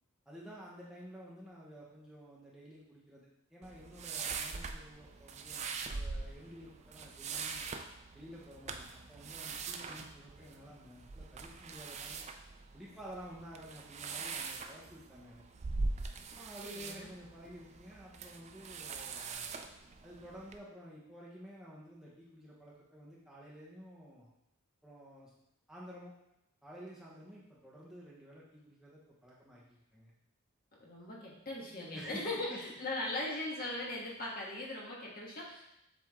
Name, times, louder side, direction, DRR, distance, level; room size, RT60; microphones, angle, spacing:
voice 1, 0.3-7.7 8.1-12.2 12.7-15.4 16.3-19.5 20.0-24.3 24.8-25.3 25.7-26.1 26.6-30.1 31.9-32.8, equal, 5° right, -6 dB, 1.0 m, -51 dB
sound 1, 3.6-20.6, right 4 dB, 30° right, 0.4 m, -42 dB
voice 2, 16.6-17.1 30.8-35.7, left 2 dB, 45° left, -3 dB, 1.4 m, -39 dB
7.6 x 3.5 x 3.6 m, 0.83 s
head